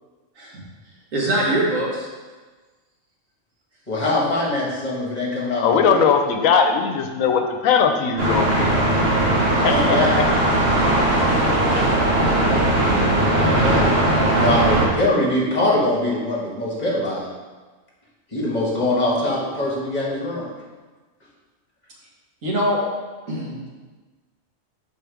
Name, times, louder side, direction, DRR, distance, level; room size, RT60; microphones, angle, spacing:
voice 1, 1.1-2.1 11.5-11.8 22.4-22.8 23.3-23.7, right 1 dB, 75° right, -3 dB, 1.7 m, -23 dB
voice 2, 3.9-6.0 9.5-10.1 13.3-13.8 14.3-17.3 18.3-20.4, left 1 dB, 35° left, -6 dB, 1.5 m, -23 dB
voice 3, 5.6-8.7 9.6-10.2, left 6 dB, 85° left, 6 dB, 1.0 m, -19 dB
sound 1, 8.2-14.9, right 1 dB, 50° right, 1.3 m, -18 dB
5.8 x 4.9 x 3.4 m, 1.3 s
omnidirectional pair, 1.4 m